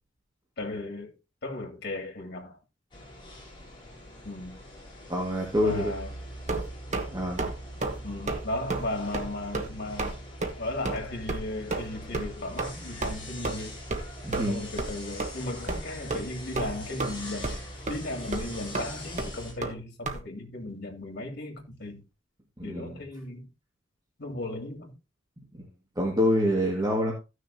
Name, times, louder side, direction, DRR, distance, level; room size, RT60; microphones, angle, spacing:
voice 1, 0.6-1.1 1.4-2.6 4.2-4.6 5.6-6.2 8.0-10.2 10.6-13.8 14.5-17.6 17.9-22.0 22.6-23.5 24.2-24.9, left 2 dB, 55° left, 2.8 m, -36 dB
sound 1, 2.9-19.5, equal, 25° left, 4.4 m, -43 dB
voice 2, 5.1-5.9 7.1-7.5 14.2-14.6 22.6-23.0 26.0-27.1, equal, 20° right, 2.0 m, -26 dB
sound 2, 6.5-7.1 7.4-7.5 7.8-8.0 8.3-8.4 8.7-8.8 9.1-9.3 9.5-9.7 10.0-10.1 10.4-10.5 10.8-11.0 11.3-11.4 11.7-11.9 12.1-12.3 12.6-12.7 13.0-13.1 13.4-13.5 13.9-14.0 14.3-14.5 14.8-14.9 15.2-15.3 15.7-15.8 16.1-16.2 16.5-17.1 17.4-17.6 17.9-18.0 18.3-18.4 18.7-18.9 19.2-19.3 19.6-19.7 20.0-20.2, right 3 dB, 35° right, 1.3 m, -30 dB
16.0 x 6.5 x 2.8 m
head